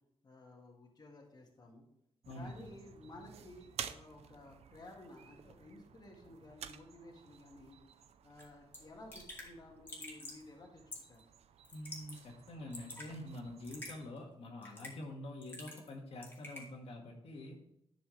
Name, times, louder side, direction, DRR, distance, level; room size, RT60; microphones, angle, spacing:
voice 1, 0.2-1.8 2.3-7.8 8.2-10.8 11.1-11.2, left 2 dB, 40° left, -1 dB, 1.8 m, -54 dB
sound 1, 2.2-14.1, right 8 dB, 85° right, 0.6 m, -52 dB
voice 2, 2.3-2.7 11.7-17.6, left 1 dB, 75° left, -1 dB, 1.9 m, -46 dB
Raindrop / Drip, 8.4-8.5 8.7-8.8 9.1-9.5 9.9-10.4 10.9-11.2 11.6-12.2 12.5-13.1 13.6-14.0 14.6-15.0 15.4-15.9 16.2-16.7, left 1 dB, 20° left, 2.3 m, -47 dB
11.0 x 6.1 x 3.2 m, 0.78 s
wide cardioid pair, 130°, 10 cm